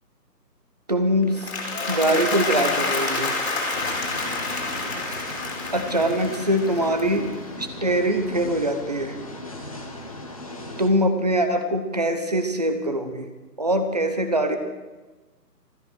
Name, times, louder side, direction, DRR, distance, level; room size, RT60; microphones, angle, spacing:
voice 1, 0.9-1.4 1.9-3.3 5.7-7.3 7.6-9.2 10.8-13.3 13.6-14.6, right 1 dB, 25° right, 8 dB, 0.9 m, -23 dB
Applause, 1.2-7.5, left 3 dB, 40° left, 4.0 m, -28 dB
sound 1, 3.7-10.9, left 2 dB, 20° left, 1.1 m, -38 dB
15.5 x 14.0 x 6.3 m, 1.2 s
figure-of-eight pair, 165°, 49 cm